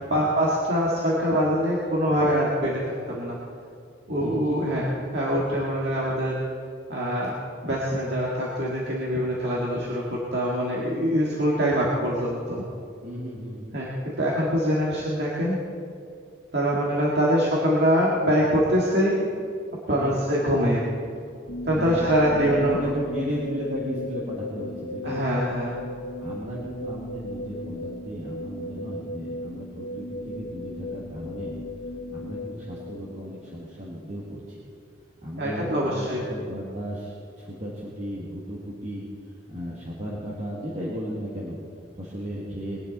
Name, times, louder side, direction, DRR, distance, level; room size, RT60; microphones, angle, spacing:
voice 1, 0.1-3.4 4.1-4.8 5.1-6.4 6.9-7.3 7.6-12.6 13.7-15.6 16.5-19.2 19.9-20.9 21.7-22.7 25.0-25.7 35.4-36.3, equal, 60° right, -5 dB, 2.0 m, -24 dB
voice 2, 4.1-4.9 13.0-13.7 19.9-20.2 21.6-25.3 26.2-31.6 32.1-34.6 35.2-39.1 39.5-41.6 42.0-42.8, equal, 35° right, -6 dB, 2.0 m, -35 dB
sound 1, 21.5-33.5, left 1 dB, 65° left, 0.9 m, -35 dB
21.5 x 10.0 x 4.1 m, 2.3 s
head